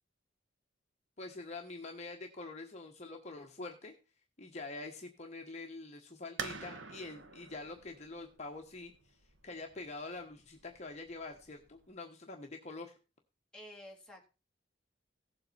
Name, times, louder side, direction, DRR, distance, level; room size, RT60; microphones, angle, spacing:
voice 1, 1.2-3.9 4.4-12.9, left 3 dB, 35° left, 2 dB, 1.3 m, -45 dB
sound 1, 6.4-11.9, right 4 dB, 80° right, 1.3 m, -47 dB
voice 2, 13.5-14.3, left 1 dB, 5° left, -3 dB, 3.1 m, -51 dB
17.0 x 7.8 x 4.3 m, 0.33 s
head